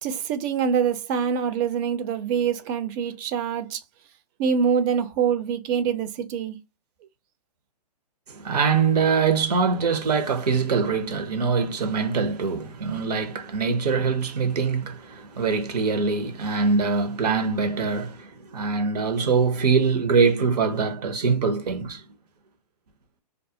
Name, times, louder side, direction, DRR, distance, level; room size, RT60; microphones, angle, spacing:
voice 1, 0.0-3.8 4.4-6.6, right 7 dB, 30° right, 0.5 m, -25 dB
voice 2, 8.3-22.0, right 5 dB, 70° right, 0.9 m, -23 dB
2.4 x 2.0 x 2.5 m
hypercardioid pair, 130°, 21 cm